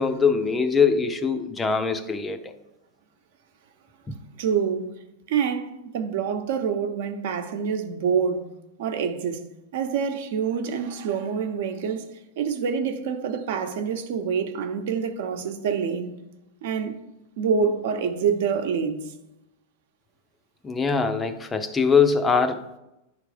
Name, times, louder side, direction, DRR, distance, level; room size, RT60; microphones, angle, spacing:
voice 1, 0.0-2.5 4.1-4.2 20.6-22.7, left 5 dB, 15° left, 0.5 m, -22 dB
voice 2, 4.4-4.9 5.3-8.5 8.8-12.0 12.4-16.1 16.6-17.0 17.4-19.1, right 6 dB, 65° right, 0.9 m, -26 dB
10.0 x 3.4 x 5.0 m
supercardioid pair, 150°, 0 cm